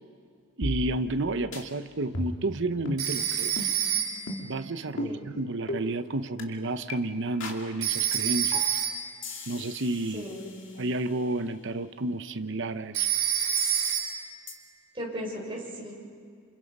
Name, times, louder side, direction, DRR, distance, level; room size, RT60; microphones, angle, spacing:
sound 1, 0.6-1.2 1.5-1.6 2.1-2.5 2.9-3.1 3.6-3.7 4.3-4.6 5.0-5.1 5.7-5.8 6.4-6.5 6.9-7.0 7.4-7.6 8.1-8.2 8.5-8.8 9.2-11.1 13.6-14.1 14.5-14.6, left 2 dB, 60° left, 2.7 m, -36 dB
voice 1, 0.6-3.7 4.4-8.8 9.5-10.2 10.8-13.1, right 2 dB, 55° right, 10 dB, 0.8 m, -31 dB
Telephone, 3.0-4.4 7.8-9.2 12.9-14.4, right 9 dB, 85° right, 4.3 m, -28 dB
voice 2, 10.1-10.6 14.9-15.9, equal, 25° right, -3 dB, 6.2 m, -37 dB
28.0 x 28.0 x 5.4 m, 2.2 s
head